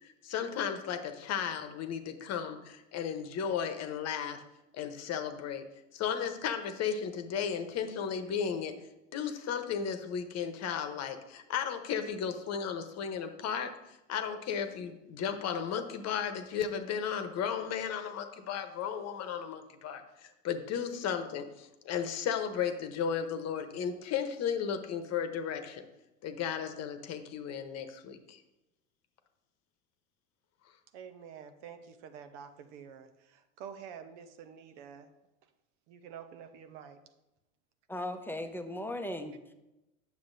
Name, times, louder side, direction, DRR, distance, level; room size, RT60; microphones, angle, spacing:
voice 1, 0.0-4.4 4.7-5.6 5.9-8.7 9.1-25.8 26.2-28.4, left 7 dB, 45° left, 7 dB, 1.0 m, -35 dB
voice 2, 30.9-35.1 35.9-37.0, right 7 dB, 65° right, 8 dB, 1.0 m, -48 dB
voice 3, 37.9-39.5, left 1 dB, 5° left, 6 dB, 0.7 m, -37 dB
9.7 x 6.9 x 2.7 m, 0.95 s
hypercardioid pair, 85°, 37 cm